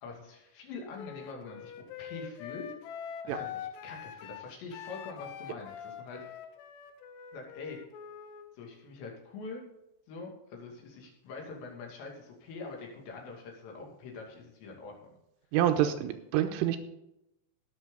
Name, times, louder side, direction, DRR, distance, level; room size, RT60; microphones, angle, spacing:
voice 1, 0.0-1.7 2.0-2.7 3.2-6.4 7.3-7.8 8.5-9.6 10.1-15.0 15.8-16.0, left 4 dB, 60° left, 0 dB, 4.2 m, -44 dB
Wind instrument woodwind instrument, 0.9-8.5, left 9 dB, 80° left, 2.4 m, -44 dB
voice 2, 15.5-16.8, right 11 dB, 85° right, 7 dB, 3.3 m, -27 dB
18.5 x 7.4 x 3.9 m, 0.87 s
omnidirectional pair, 6.0 m